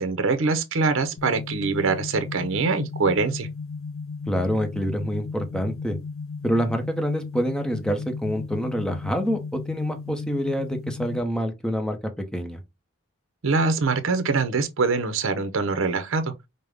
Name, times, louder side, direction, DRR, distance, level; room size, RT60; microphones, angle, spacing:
voice 1, 0.0-3.5 13.4-16.3, right 4 dB, 65° right, 0.7 m, -24 dB
sound 1, 1.2-11.2, left 4 dB, 90° left, 0.7 m, -35 dB
voice 2, 4.3-6.0 6.4-12.0 12.3-12.6, equal, 5° left, 0.7 m, -26 dB
5.3 x 2.1 x 3.3 m
head